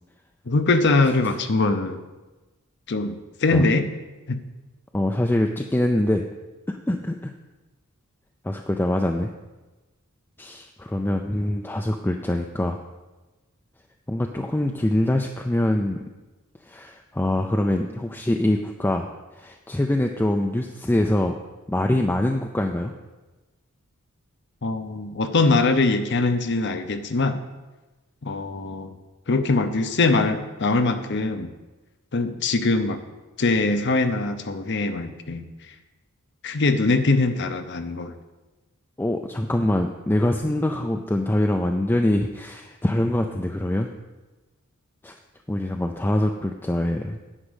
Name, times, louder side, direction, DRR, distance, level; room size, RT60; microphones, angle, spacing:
voice 1, 0.5-2.0 2.9-3.9 4.3-4.4 24.6-27.4 28.2-29.0 29.3-31.5 32.1-33.0 33.4-35.5 36.4-38.1, left 3 dB, 55° left, 8 dB, 0.7 m, -22 dB
voice 2, 4.9-6.3 6.7-7.3 8.4-9.3 10.4-12.8 14.1-16.0 16.7-19.1 19.3-21.4 21.7-22.9 39.0-43.9 45.0-45.2 45.5-47.2, left 1 dB, 10° left, 3 dB, 0.4 m, -24 dB
9.8 x 5.1 x 8.0 m, 1.2 s
head